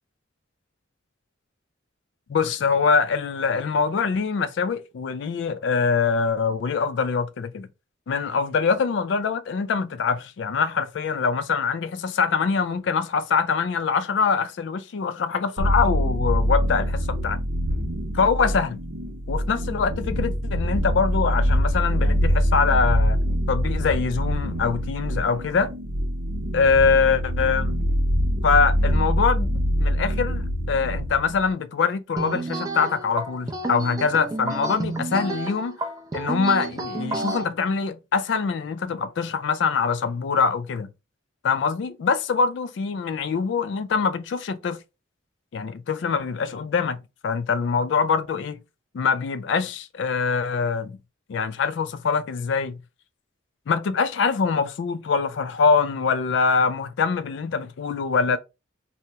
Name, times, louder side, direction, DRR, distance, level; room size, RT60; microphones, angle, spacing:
voice 1, 2.3-7.7 8.1-17.4 18.1-18.8 19.3-23.2 23.5-25.7 26.5-27.8 28.4-29.5 29.8-35.8 36.1-40.9 41.4-44.8 45.5-48.6 48.9-51.0 51.3-52.8 53.7-58.4, left 5 dB, 65° left, 0.3 m, -24 dB
sound 1, 15.6-31.5, equal, 75° right, 0.6 m, -24 dB
sound 2, 32.2-37.4, right 2 dB, 20° right, 0.4 m, -30 dB
2.8 x 2.0 x 3.3 m
head